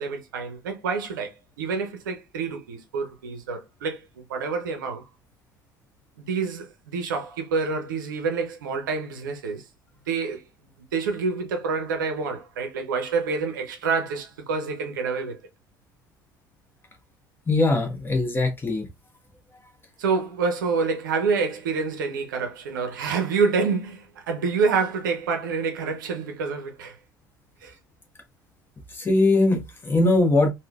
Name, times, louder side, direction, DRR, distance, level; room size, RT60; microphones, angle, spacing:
voice 1, 0.0-5.0 6.2-9.6 10.1-10.4 10.9-15.4 20.0-27.0 27.6-27.7, right 5 dB, 70° right, 0.7 m, -27 dB
voice 2, 17.5-18.8 28.9-30.5, left 2 dB, 20° left, 1.0 m, -21 dB
3.7 x 2.2 x 2.3 m
figure-of-eight pair, 65°, 11 cm